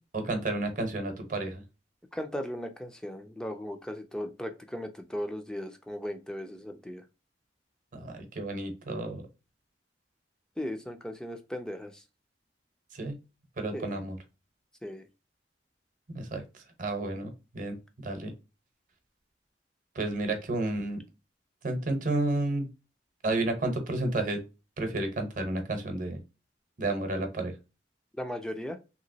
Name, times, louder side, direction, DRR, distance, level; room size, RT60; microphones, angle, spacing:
voice 1, 0.1-1.6 7.9-9.2 12.9-13.1 13.6-14.2 16.1-16.4 16.8-17.7 18.0-18.3 19.9-21.0 21.6-22.7 23.2-24.4 24.8-26.2 26.8-27.5, right 2 dB, 45° right, 5 dB, 0.8 m, -31 dB
voice 2, 2.1-7.0 10.6-12.0 13.7-13.9 14.8-15.1 28.2-28.8, left 1 dB, 5° left, 6 dB, 0.4 m, -37 dB
2.9 x 2.9 x 2.7 m, 0.29 s
head